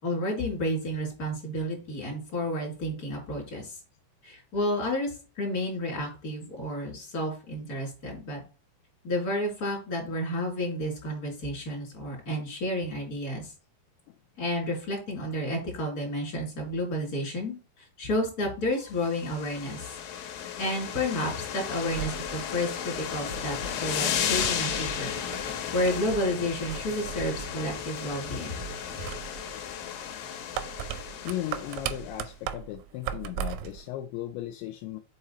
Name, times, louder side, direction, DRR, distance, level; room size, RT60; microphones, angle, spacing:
voice 1, 0.0-3.8 4.2-8.4 9.0-13.5 14.4-20.0 20.6-25.1 25.7-28.5, left 1 dB, 20° left, -1 dB, 3.2 m, -31 dB
sound 1, 18.9-32.2, left 9 dB, 70° left, 2.8 m, -34 dB
sound 2, 21.8-33.9, right 11 dB, 80° right, 2.6 m, -40 dB
sound 3, 23.2-29.0, right 3 dB, 35° right, 1.8 m, -45 dB
voice 2, 31.2-35.0, left 13 dB, 85° left, 6 dB, 2.6 m, -36 dB
6.6 x 4.8 x 4.2 m, 0.33 s
omnidirectional pair, 5.7 m